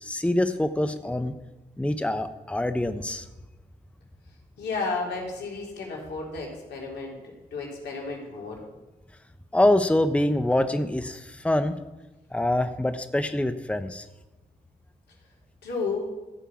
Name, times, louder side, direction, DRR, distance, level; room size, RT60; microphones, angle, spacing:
voice 1, 0.0-1.3 1.8-3.2 9.5-11.8 12.3-14.1, left 1 dB, 5° left, 9 dB, 1.0 m, -25 dB
voice 2, 4.6-7.2 7.5-8.6 15.6-16.1, left 4 dB, 80° left, -2 dB, 3.6 m, -32 dB
14.0 x 5.6 x 8.6 m, 1.1 s
supercardioid pair, 45°, 17 cm